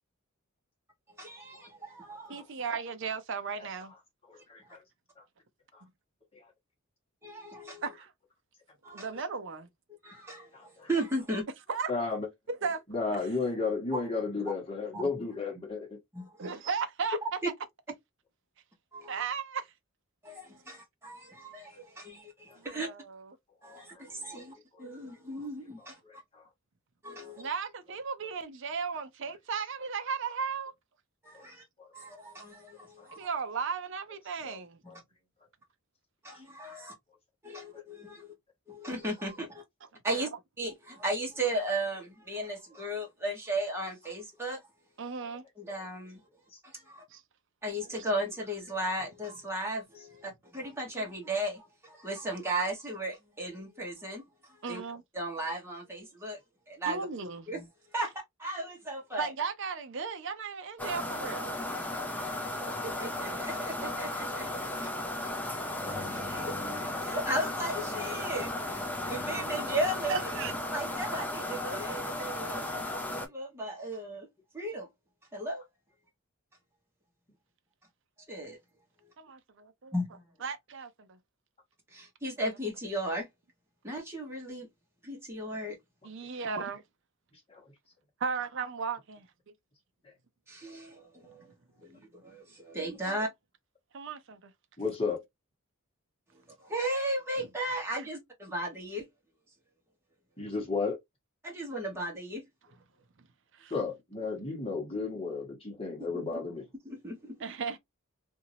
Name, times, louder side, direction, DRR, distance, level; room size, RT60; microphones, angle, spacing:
voice 1, 1.2-2.4 7.2-7.8 8.8-9.1 10.0-11.4 13.9-14.0 14.9-15.1 16.1-16.5 17.4-17.5 18.9-19.1 20.2-22.9 23.6-26.0 27.0-27.5 31.2-31.6 31.9-33.3 34.9-35.0 36.2-36.9 37.4-38.3 38.7-39.6 40.0-40.3 40.6-44.6 45.6-46.2 46.6-47.0 47.6-54.2 54.5-54.8 55.1-56.4 56.7-57.1 57.5-57.7 57.9-59.3 62.7-64.5 64.8-68.8 69.1-70.2 70.7-72.7 73.1-74.3 74.5-74.9 75.3-75.6 78.3-78.6 79.9-80.1 81.9-83.3 83.8-84.7 85.0-85.8 90.5-91.5 91.8-93.3 96.6-99.0 101.4-102.4 106.1-106.2 106.8-107.4, right 1 dB, 10° right, 1.3 m, -36 dB
voice 2, 2.3-3.9 7.8-8.1 8.9-9.7 11.7-11.9 12.5-12.8 13.1-13.2 16.4-17.4 19.1-19.7 22.6-23.4 27.4-30.7 33.1-34.8 40.1-40.3 45.0-45.4 47.1-47.2 54.6-55.0 56.9-57.5 59.2-61.6 70.1-70.5 79.2-79.4 80.4-81.1 86.0-86.8 88.2-89.3 93.0-93.2 93.9-94.5 103.5-103.7 107.4-107.8, right 5 dB, 55° right, 0.6 m, -35 dB
voice 3, 10.5-10.9 11.9-12.3 12.9-16.0 23.6-24.0 24.7-24.8 26.3-26.5 27.2-27.3 31.3-31.4 31.8-31.9 33.0-33.1 34.4-34.6 34.9-35.0 37.7-37.8 67.1-67.2 87.5-87.6 94.8-95.2 100.4-101.0 103.7-106.6, left 4 dB, 25° left, 1.4 m, -33 dB
sound 1, 60.8-73.3, left 1 dB, 5° left, 0.5 m, -35 dB
2.8 x 2.7 x 2.7 m
head